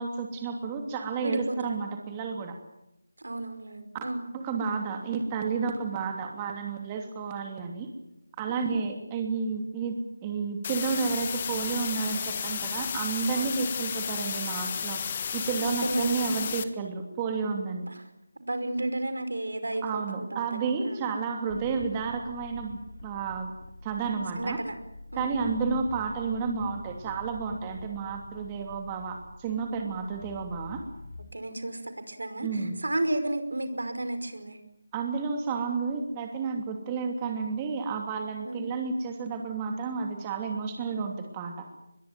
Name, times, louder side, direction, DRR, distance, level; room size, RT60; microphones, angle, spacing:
voice 1, 0.0-2.6 4.3-7.9 8.4-10.0 10.2-15.0 15.3-17.9 19.8-23.5 23.8-24.6 25.1-30.8 32.4-32.8 34.9-41.7, right 5 dB, 15° right, 3 dB, 2.9 m, -31 dB
voice 2, 1.2-1.9 3.2-4.2 8.5-8.8 13.3-13.7 15.6-16.5 17.9-18.0 18.5-21.0 24.4-24.7 25.1-25.6 31.3-34.6 38.4-38.7, right 1 dB, 85° right, 10 dB, 5.4 m, -33 dB
sound 1, 10.6-16.6, left 7 dB, 30° left, 1.6 m, -33 dB
sound 2, 21.5-31.3, left 2 dB, 75° left, 5.7 m, -45 dB
23.0 x 22.0 x 9.3 m, 0.83 s
figure-of-eight pair, 165°, 0 cm